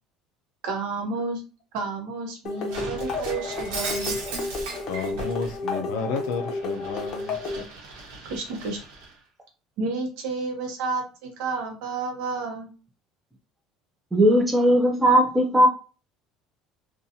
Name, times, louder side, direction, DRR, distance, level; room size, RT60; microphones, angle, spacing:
voice 1, 0.6-1.4 1.7-4.2 8.3-8.8 9.8-12.7, right 3 dB, 65° right, 0.7 m, -31 dB
sound 1, 2.5-7.6, left 3 dB, 35° left, 0.7 m, -32 dB
Shatter, 2.7-5.6 6.0-9.1, right 3 dB, 85° right, 0.9 m, -37 dB
voice 2, 4.9-7.4, left 5 dB, 80° left, 0.4 m, -31 dB
voice 3, 14.1-15.7, equal, 5° right, 0.4 m, -18 dB
2.7 x 2.2 x 2.6 m
cardioid pair, 170°, 0 cm